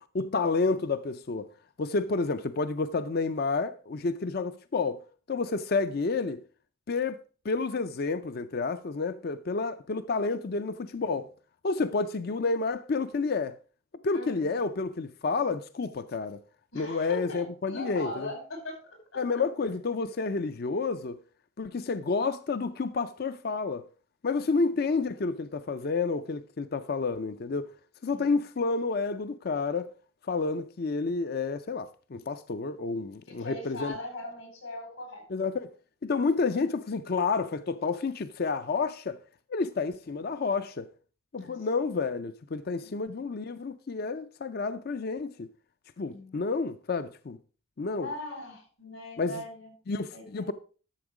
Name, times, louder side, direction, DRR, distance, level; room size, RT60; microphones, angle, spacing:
voice 1, 0.1-1.5 1.8-5.0 5.3-6.4 6.9-11.3 11.6-13.5 14.0-16.4 16.7-18.3 19.2-21.2 21.6-23.8 24.2-27.7 28.0-29.9 30.3-33.9 35.3-35.7 36.0-39.2 39.5-40.9 41.3-45.5 46.0-47.4 47.8-48.1 49.2-49.4 49.9-50.5, left 4 dB, 50° left, 0.5 m, -30 dB
voice 2, 14.1-14.4 16.7-18.8 19.1-19.4 24.5-24.6 28.1-28.4 33.3-35.5 41.4-41.5 42.8-43.0 46.1-46.3 48.0-49.7 50.1-50.5, left 1 dB, 85° left, 5.5 m, -40 dB
12.0 x 7.1 x 4.8 m
head